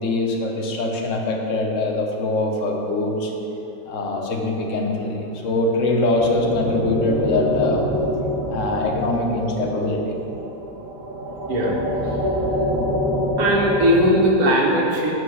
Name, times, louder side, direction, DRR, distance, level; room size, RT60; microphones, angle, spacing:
voice 1, 0.0-3.3 3.9-7.8 8.5-10.1, left 2 dB, 65° left, 1 dB, 1.1 m, -23 dB
sound 1, 5.4-14.3, equal, 65° right, 1.3 m, -26 dB
voice 2, 13.4-15.1, equal, 85° right, -2 dB, 1.5 m, -18 dB
6.1 x 4.8 x 6.3 m, 3.0 s
omnidirectional pair, 1.5 m